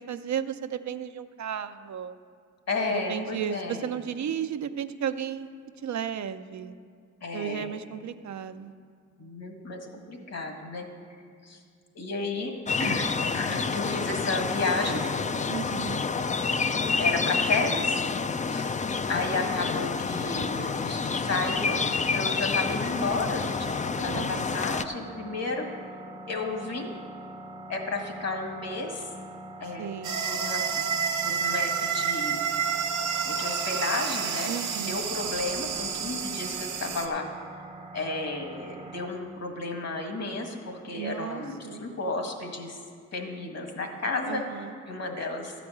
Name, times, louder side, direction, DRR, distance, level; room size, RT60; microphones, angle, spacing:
voice 1, 0.0-2.2 2.9-5.5 5.8-6.8 7.3-8.7 15.5-16.0 24.0-24.5 29.8-30.3 34.5-35.0 41.0-41.8 44.3-44.7, right 8 dB, 65° right, 10 dB, 0.6 m, -34 dB
voice 2, 2.7-3.9 7.2-7.7 9.2-10.9 11.4-11.6 12.0-12.5 12.8-13.1 13.3-15.0 17.0-17.9 18.5-18.8 19.1-21.8 22.1-25.8 26.3-27.0 27.7-29.1 29.6-29.9 30.3-30.8 31.2-32.4 33.2-34.5 34.8-37.3 37.9-42.8 43.1-44.4 44.9-45.5, left 3 dB, 55° left, 3 dB, 1.7 m, -32 dB
sound 1, 12.7-24.8, left 4 dB, 25° left, 0.4 m, -28 dB
sound 2, 20.3-39.1, right 2 dB, 20° right, 0.6 m, -44 dB
sound 3, 30.0-37.1, right 7 dB, 90° right, 1.1 m, -29 dB
12.5 x 5.1 x 8.5 m, 2.2 s
cardioid pair, 85°, 30 cm